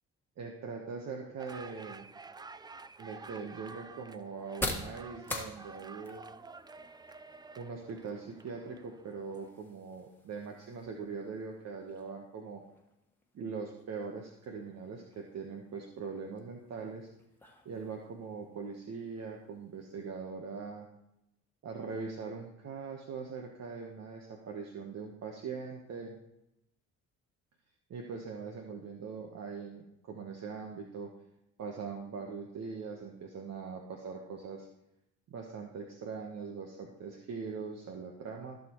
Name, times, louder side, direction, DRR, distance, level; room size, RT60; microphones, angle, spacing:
voice 1, 0.4-2.1 3.0-6.3 7.6-12.6 13.3-17.1 17.6-20.9 21.6-26.1 27.9-31.1 31.6-34.7 35.3-38.6, right 5 dB, 60° right, 1 dB, 1.2 m, -41 dB
sound 1, 1.4-9.5, right 4 dB, 15° right, 0.3 m, -50 dB
sound 2, 2.5-20.1, left 1 dB, 5° left, 1.5 m, -47 dB
15.0 x 6.6 x 3.1 m, 0.85 s
cardioid pair, 90°, 30 cm